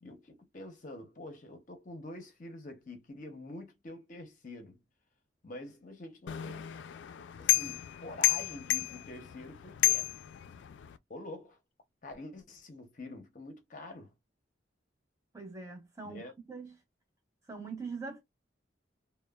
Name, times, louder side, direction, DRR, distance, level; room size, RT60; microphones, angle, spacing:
voice 1, 0.0-4.8 5.4-6.7 7.4-10.1 11.1-11.6 12.0-14.1 16.0-16.3, left 2 dB, 45° left, 0.6 m, -46 dB
sound 1, 6.3-11.0, left 17 dB, 75° left, 0.3 m, -32 dB
voice 2, 15.3-16.2 16.5-16.7 17.5-18.2, right 4 dB, 15° right, 0.9 m, -42 dB
3.0 x 2.0 x 2.2 m
head